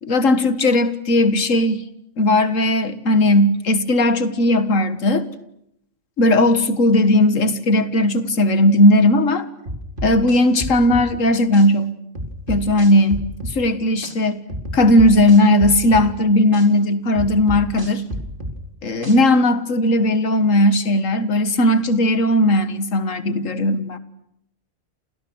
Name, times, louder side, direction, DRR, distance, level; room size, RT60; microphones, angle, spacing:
voice 1, 0.0-1.9 2.2-5.3 6.2-9.5 10.0-11.9 12.5-14.4 14.7-18.0 18.8-24.0, left 1 dB, 75° left, 12 dB, 2.1 m, -17 dB
sound 1, 9.7-11.1 11.5-11.7 12.2-13.6 14.0-14.2 14.5-16.1 16.5-16.7 17.2-18.6 19.0-19.2, equal, 40° right, 4.7 m, -30 dB
29.5 x 29.5 x 6.4 m, 0.76 s
omnidirectional pair, 1.3 m